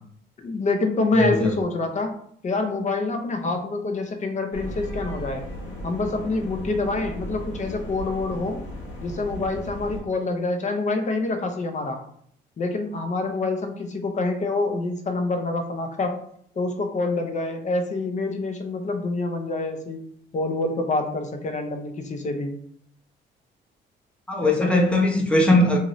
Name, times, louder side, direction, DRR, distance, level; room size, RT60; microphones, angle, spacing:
voice 1, 0.4-2.1 2.4-5.4 5.8-8.6 9.0-12.0 12.6-16.2 16.6-20.0 20.3-22.5 24.4-24.8, left 3 dB, 35° left, 5 dB, 0.6 m, -26 dB
voice 2, 1.2-1.6 24.3-25.8, left 1 dB, 5° left, -1 dB, 0.8 m, -20 dB
sound 1, 4.5-10.0, equal, 85° left, 0.9 m, -36 dB
2.7 x 2.6 x 3.0 m, 0.64 s
cardioid pair, 90°, 20 cm